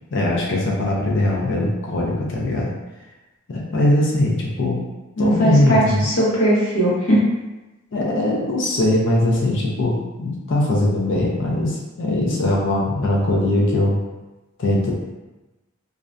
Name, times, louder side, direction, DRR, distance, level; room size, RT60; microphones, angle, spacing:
voice 1, 0.1-2.7 3.5-4.8 5.2-6.0 7.9-14.0 14.6-14.9, left 1 dB, 60° left, -3 dB, 0.4 m, -20 dB
voice 2, 5.2-7.2, equal, 75° left, -7 dB, 0.9 m, -18 dB
2.4 x 2.1 x 2.5 m, 1.1 s
head